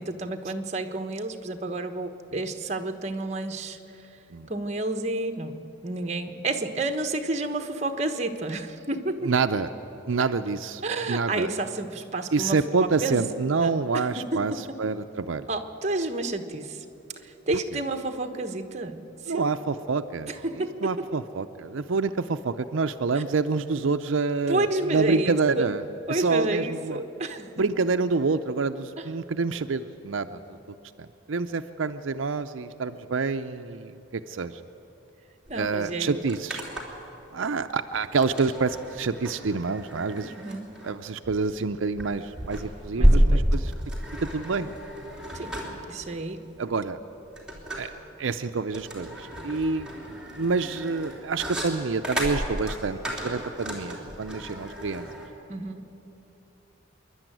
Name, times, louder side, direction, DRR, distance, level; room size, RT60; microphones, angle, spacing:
voice 1, 0.0-4.1 4.5-9.3 10.8-12.7 13.0-13.2 13.6-14.6 15.5-16.8 17.2-19.5 20.3-21.2 23.1-23.2 24.5-25.7 26.1-27.5 29.0-29.1 35.5-36.2 40.4-40.7 43.0-43.4 45.3-45.6 45.9-46.5 55.5-55.9, right 2 dB, 35° right, 6 dB, 1.2 m, -30 dB
voice 2, 9.3-9.7 10.1-10.8 11.1-11.5 12.3-14.5 14.8-15.5 19.3-20.3 20.8-25.8 26.1-27.0 27.6-30.4 31.0-34.6 35.5-36.6 37.3-40.3 40.8-43.7 44.3-44.7 46.6-47.0 47.8-47.9 48.2-49.9 50.3-55.1, right 4 dB, 80° right, 8 dB, 0.6 m, -27 dB
sound 1, 35.5-35.6 35.8-37.1 38.1-55.3, equal, 5° right, 3.3 m, -30 dB
26.5 x 11.5 x 9.2 m, 2.9 s
head